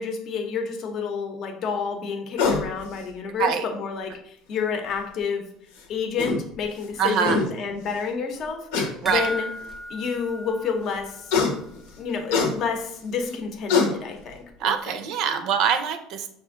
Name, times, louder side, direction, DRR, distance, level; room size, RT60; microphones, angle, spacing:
voice 1, 0.0-5.4 5.9-9.5 9.9-11.3 12.0-15.0, left 5 dB, 45° left, 4 dB, 0.7 m, -29 dB
sound 1, 2.4-2.7 4.1-4.2 5.8-5.9 6.2-6.4 6.9-7.0 7.2-7.5 8.7-8.9 9.7-9.8 11.3-11.5 12.3-12.5 13.3-13.4 13.7-13.9, left 4 dB, 90° left, 0.9 m, -22 dB
voice 2, 7.0-7.4 9.0-9.3 14.6-16.3, right 7 dB, 60° right, 8 dB, 0.5 m, -24 dB
sound 2, 9.1-11.6 11.9-12.0 12.4-12.5, equal, 5° right, 0.4 m, -35 dB
5.6 x 2.5 x 3.7 m, 0.72 s
cardioid pair, 130°, 0 cm